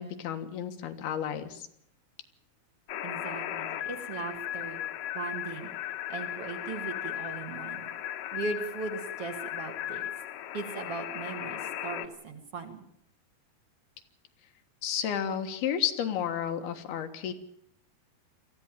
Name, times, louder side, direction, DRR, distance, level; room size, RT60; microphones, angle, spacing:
voice 1, 0.0-1.7 14.8-17.3, left 9 dB, 85° left, 7 dB, 3.4 m, -32 dB
sound 1, 2.9-12.1, left 12 dB, 70° left, 2.6 m, -37 dB
voice 2, 3.0-4.8 5.1-5.7 6.1-7.9 8.3-10.0 10.5-12.8, right 4 dB, 45° right, 5 dB, 2.5 m, -38 dB
22.0 x 15.0 x 9.0 m, 0.73 s
omnidirectional pair, 4.3 m